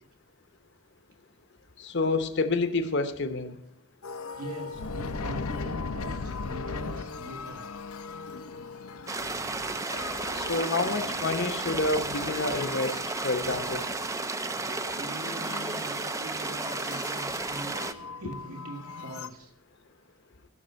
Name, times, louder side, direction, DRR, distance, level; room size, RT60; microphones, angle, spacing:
voice 1, 1.8-3.6 10.3-13.8, left 3 dB, 55° left, 9 dB, 0.8 m, -28 dB
sound 1, 4.0-19.3, left 4 dB, 80° left, 0.7 m, -39 dB
voice 2, 4.3-7.7 15.0-17.8 18.2-19.5, right 2 dB, 85° right, 1 dB, 2.1 m, -42 dB
sound 2, 9.1-17.9, right 3 dB, 15° right, 0.4 m, -33 dB
15.0 x 6.0 x 5.2 m, 0.76 s
head